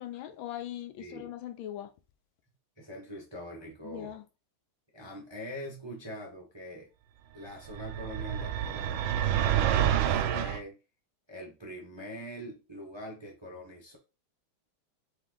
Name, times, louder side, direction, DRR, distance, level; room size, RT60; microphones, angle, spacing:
voice 1, 0.0-1.9 3.8-4.2, left 12 dB, 80° left, 1.3 m, -40 dB
voice 2, 1.0-1.3 2.8-4.1 4.9-6.9 7.3-10.8 11.3-14.0, equal, 40° right, 0.3 m, -43 dB
sound 1, 7.7-10.6, right 10 dB, 75° right, 1.3 m, -28 dB
4.2 x 3.1 x 3.7 m
omnidirectional pair, 2.3 m